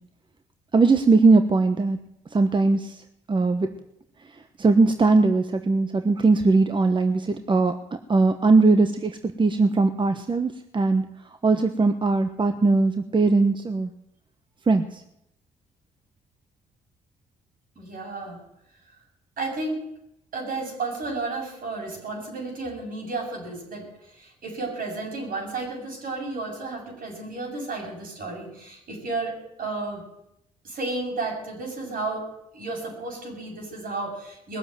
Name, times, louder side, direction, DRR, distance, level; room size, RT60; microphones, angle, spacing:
voice 1, 0.7-2.0 2.3-3.0 3.3-3.7 4.6-7.7 8.1-11.1 11.4-13.9 14.7-15.0, right 3 dB, 30° right, 8 dB, 1.2 m, -20 dB
voice 2, 17.8-18.4 19.4-19.8 20.3-30.0 30.6-34.6, right 3 dB, 65° right, 1 dB, 7.6 m, -32 dB
20.0 x 7.7 x 9.1 m, 0.79 s
supercardioid pair, 65°, 16 cm